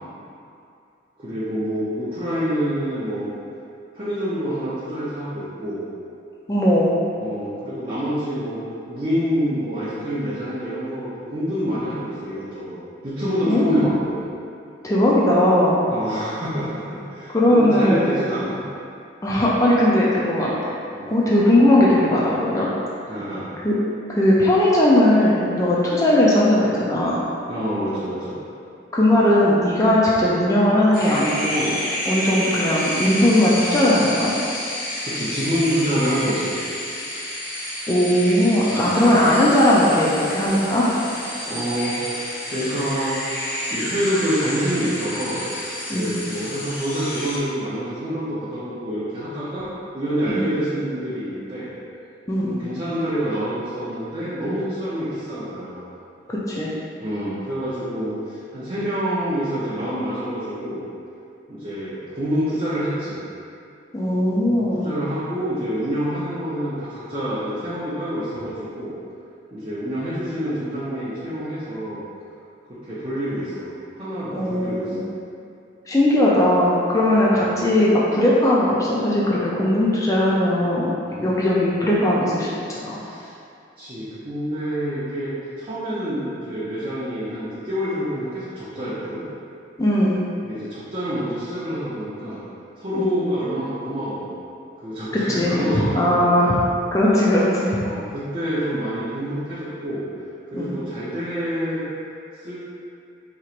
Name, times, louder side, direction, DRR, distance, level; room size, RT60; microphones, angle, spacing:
voice 1, 1.2-3.3 3.9-5.8 7.2-8.6 8.9-14.1 15.9-18.6 20.9-21.1 23.1-23.5 27.5-28.4 35.0-36.5 38.7-39.0 41.5-43.2 43.7-45.5 45.9-49.7 49.9-51.7 52.4-55.9 57.0-60.8 61.5-63.2 64.4-68.9 69.5-72.0 72.7-73.7 74.0-75.0 77.1-77.2 81.1-81.3 82.9-83.3 83.8-89.2 90.4-92.4 92.8-94.4 94.8-96.6 97.8-100.0 100.5-101.8 102.4-102.6, equal, 30° right, -12 dB, 0.6 m, -27 dB
voice 2, 6.5-6.9 13.5-13.8 14.8-15.8 17.3-18.0 19.2-20.5 21.1-22.7 23.6-23.7 24.1-27.2 28.9-31.7 32.1-34.3 37.9-40.9 45.9-46.1 50.3-50.4 52.3-52.5 56.3-56.7 63.9-64.9 74.3-75.0 75.9-80.9 81.2-83.0 89.8-90.2 92.9-93.1 95.1-96.5 96.9-97.8 100.5-100.7, left 1 dB, 15° left, -6 dB, 0.4 m, -18 dB
sound 1, 30.9-47.4, left 1 dB, 50° left, 0.7 m, -29 dB
4.5 x 2.8 x 2.5 m, 2.5 s
head